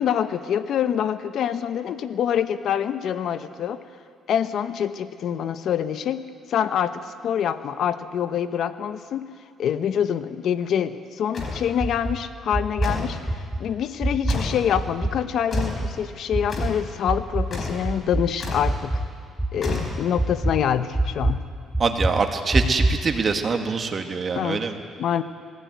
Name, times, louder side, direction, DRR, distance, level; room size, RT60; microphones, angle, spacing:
voice 1, 0.0-3.8 4.3-9.3 9.6-19.0 19.5-21.4 24.3-24.6 25.0-25.2, left 9 dB, 65° left, 11 dB, 0.9 m, -26 dB
sound 1, 11.3-11.7 12.8-13.2 14.3-14.7 15.5-15.9 16.5-16.8 17.5-17.9 18.4-18.8 19.6-20.3, left 3 dB, 40° left, 4.3 m, -30 dB
sound 2, 11.8-12.2 12.5-12.9 13.3-13.6 14.0-14.4 14.7-15.2 15.5-15.9 16.3-16.7 17.1-17.6 17.8-18.3 18.6-19.1 19.4-19.8 20.2-20.5 20.9-21.4 21.7-22.1 22.5-23.0, right 2 dB, 5° right, 2.1 m, -24 dB
voice 2, 21.8-24.8, right 4 dB, 40° right, 5 dB, 1.9 m, -24 dB
20.0 x 15.5 x 9.4 m, 2.1 s
cardioid pair, 95°, 0 cm